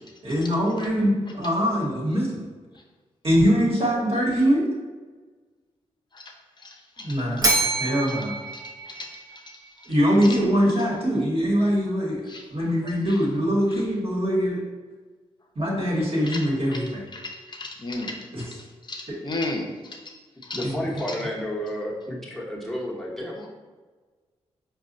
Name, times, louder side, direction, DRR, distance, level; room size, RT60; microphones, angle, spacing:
voice 1, 0.2-2.4 3.2-4.7 7.0-7.5 7.8-8.3 9.9-12.2 12.5-14.6 15.5-17.0 18.3-18.5 19.1-19.2 20.6-20.7, equal, 50° right, -5 dB, 1.3 m, -23 dB
voice 2, 6.6-7.1 8.9-9.1 12.3-12.4 16.3-16.4 16.7-16.8 17.1-17.2 17.5-18.1 18.9-19.6 20.5-20.6, left 2 dB, 40° left, 2 dB, 0.7 m, -32 dB
Bell, 7.4-9.6, right 2 dB, 30° right, 0.8 m, -26 dB
voice 3, 20.5-23.5, equal, ahead, -3 dB, 1.0 m, -31 dB
4.7 x 2.2 x 2.6 m, 1.3 s
supercardioid pair, 45°, 12 cm